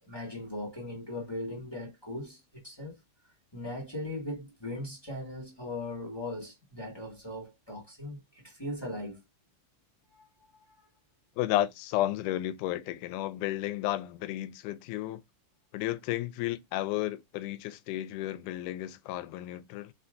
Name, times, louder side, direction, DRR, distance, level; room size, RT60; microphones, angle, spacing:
voice 1, 0.0-3.0 3.5-9.2 10.1-10.3 10.5-10.7, left 1 dB, 30° left, 0.4 m, -39 dB
voice 2, 11.4-15.2 15.7-19.9, left 14 dB, 80° left, 2.0 m, -32 dB
4.4 x 4.1 x 2.5 m
omnidirectional pair, 3.7 m